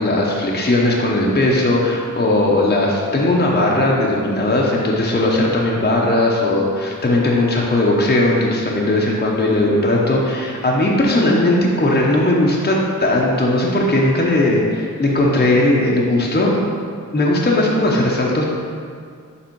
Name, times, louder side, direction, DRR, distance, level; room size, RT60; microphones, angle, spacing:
voice 1, 0.0-16.5 17.1-18.4, left 1 dB, 30° left, -3 dB, 0.8 m, -17 dB
6.9 x 3.3 x 4.6 m, 2.2 s
wide cardioid pair, 70°, 34 cm